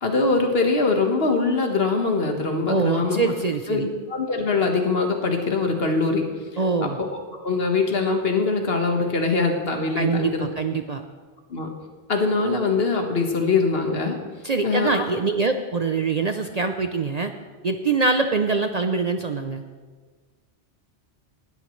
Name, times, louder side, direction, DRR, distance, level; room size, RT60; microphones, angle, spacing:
voice 1, 0.0-3.3 3.7-6.3 6.8-10.5 11.5-11.7 12.1-14.2 14.6-15.0, left 3 dB, 60° left, 3 dB, 1.6 m, -23 dB
voice 2, 2.7-3.9 6.6-7.0 10.0-11.0 14.4-17.3 17.6-19.6, right 4 dB, 45° right, 7 dB, 0.6 m, -24 dB
19.0 x 13.0 x 3.2 m, 1.4 s
omnidirectional pair, 1.2 m